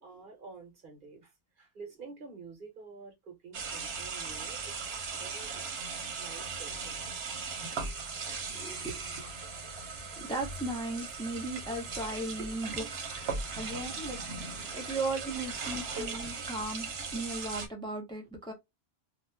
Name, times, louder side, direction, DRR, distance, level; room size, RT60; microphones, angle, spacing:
voice 1, 0.0-5.6 6.2-7.1 7.6-7.8 8.8-9.2 13.1-13.6 14.6-15.0 16.1-16.2 17.8-17.9 18.4-18.5, right 4 dB, 55° right, 1.1 m, -49 dB
sound 1, 3.5-17.7, right 4 dB, 80° right, 1.1 m, -38 dB
voice 2, 8.5-9.0 10.2-14.2 14.7-16.9 17.1-18.5, right 2 dB, 5° left, 0.7 m, -37 dB
2.6 x 2.4 x 3.2 m
omnidirectional pair, 1.0 m